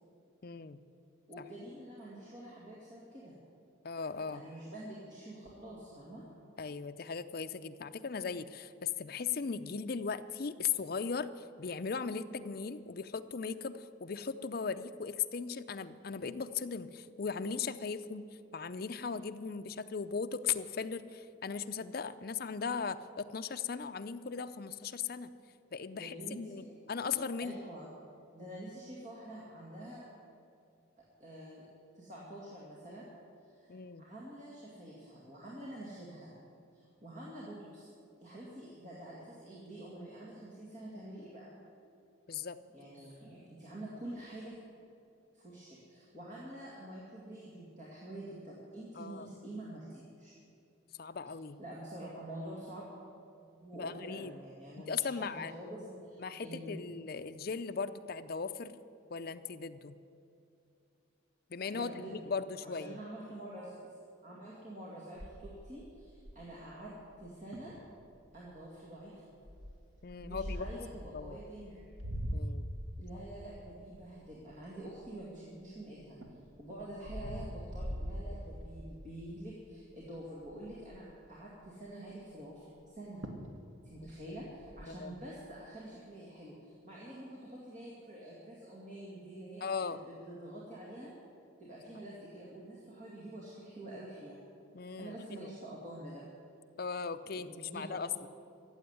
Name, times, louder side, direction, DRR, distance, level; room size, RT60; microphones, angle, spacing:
voice 1, 0.4-0.8 3.8-4.4 6.6-18.3 18.5-25.3 25.7-27.6 33.7-34.1 42.3-42.6 43.0-43.1 49.0-49.3 51.0-51.6 53.8-54.3 54.8-55.5 56.2-58.8 59.1-59.9 61.5-63.0 70.0-70.7 71.1-71.4 72.3-72.7 84.3-84.4 84.9-85.2 89.6-90.0 94.7-95.5 96.8-98.3, left 5 dB, 45° left, 9 dB, 0.5 m, -38 dB
voice 2, 1.3-3.3 4.3-6.2 25.9-26.7 27.4-27.9 28.3-30.1 31.2-31.7 31.9-33.1 33.4-36.3 36.7-37.9 38.2-41.5 42.7-44.6 45.3-50.3 51.6-52.9 53.6-56.8 61.7-62.3 62.6-63.8 64.2-66.9 67.2-67.7 68.3-69.4 70.2-71.8 73.0-76.2 76.6-82.7 82.9-83.2 83.8-91.1 91.6-94.4 95.0-96.2 97.3-98.3, right 1 dB, 35° right, -5 dB, 2.1 m, -47 dB
sound 1, 65.2-66.6 67.2-67.3 67.5-67.8 68.3-68.6 69.4-70.9 71.6-75.5 76.0-79.0 79.5-79.7 80.0-80.1 80.4-81.1 82.8-82.9 83.2-83.6 83.9-84.8, equal, 70° right, 1.5 m, -42 dB
14.5 x 7.8 x 9.6 m, 2.6 s
head